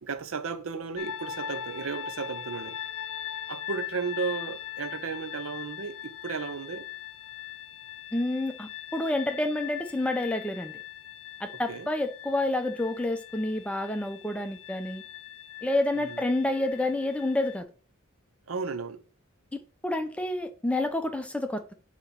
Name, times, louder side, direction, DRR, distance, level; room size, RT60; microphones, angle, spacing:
voice 1, 0.0-2.8 3.5-6.9 11.5-11.9 16.0-16.2 18.5-19.0, right 5 dB, 70° right, 0.7 m, -34 dB
sound 1, 1.0-17.6, left 10 dB, 75° left, 0.5 m, -41 dB
voice 2, 8.1-10.8 11.4-15.0 15.6-17.7 19.5-21.7, left 1 dB, 5° left, 0.5 m, -29 dB
6.9 x 2.9 x 5.8 m
head